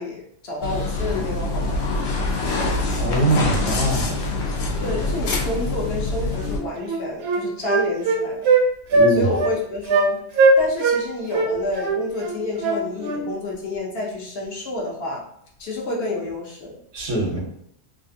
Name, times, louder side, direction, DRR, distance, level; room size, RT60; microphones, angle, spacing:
voice 1, 0.0-1.9 4.8-8.5 9.1-10.2 10.6-15.2 15.6-16.7, left 2 dB, 60° left, -2 dB, 0.9 m, -29 dB
sound 1, 0.6-6.6, left 2 dB, 85° left, 1.0 m, -25 dB
voice 2, 3.0-4.2 8.9-9.4 16.9-17.4, right 2 dB, 90° right, -2 dB, 1.4 m, -22 dB
Wind instrument woodwind instrument, 6.4-6.6 6.9-8.6 8.9-9.1 9.4-9.5 9.9-10.1 10.4-11.0 11.3-13.2, right 3 dB, 65° right, 0.8 m, -19 dB
3.2 x 2.4 x 2.6 m, 0.70 s
omnidirectional pair, 1.3 m